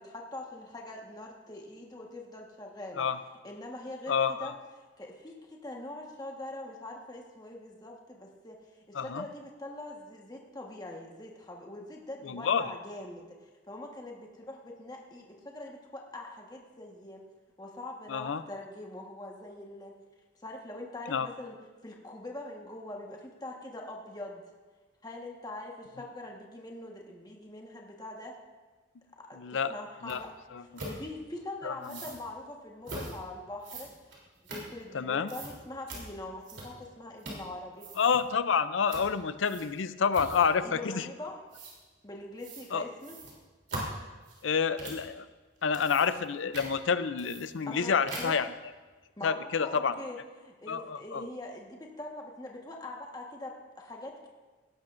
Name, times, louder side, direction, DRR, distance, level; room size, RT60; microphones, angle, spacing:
voice 1, 0.0-3.1 3.4-4.5 5.0-8.6 8.9-17.2 17.6-19.9 20.3-21.6 21.8-24.4 25.0-28.4 29.3-30.3 30.9-33.9 34.5-37.9 40.6-41.4 42.0-43.1 47.7-48.4 49.2-54.3, left 2 dB, 20° left, 0 dB, 1.4 m, -43 dB
voice 2, 4.1-4.5 8.9-9.2 12.2-12.6 18.1-18.4 21.1-21.3 29.4-29.7 30.0-30.2 30.5-30.6 31.6-31.7 34.9-35.3 38.0-41.0 42.7-42.9 44.4-45.3 45.6-48.5 49.2-49.9 50.7-51.3, left 6 dB, 85° left, 12 dB, 0.5 m, -28 dB
sound 1, 30.1-30.2 30.8-31.0 31.8-32.2 32.8-33.1 33.6-35.0 35.3-35.5 35.9-36.0 36.4-36.9 37.2-37.5 37.7-38.2 38.9-39.1 39.4-39.8 40.1-40.6 41.5-41.7 42.4-42.7 43.0-45.1 45.6-46.3 46.5-46.7 47.2-47.8 48.1-48.5, right 2 dB, 65° right, 3.4 m, -41 dB
17.5 x 11.5 x 2.6 m, 1.3 s
head